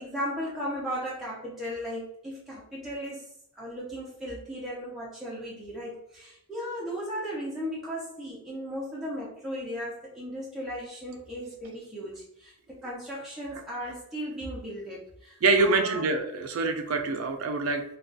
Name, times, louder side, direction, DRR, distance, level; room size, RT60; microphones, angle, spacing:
voice 1, 0.0-3.3 3.6-16.0, equal, ahead, -7 dB, 0.6 m, -36 dB
voice 2, 15.4-17.8, right 3 dB, 75° right, 4 dB, 0.4 m, -25 dB
2.3 x 2.3 x 3.8 m, 0.75 s
head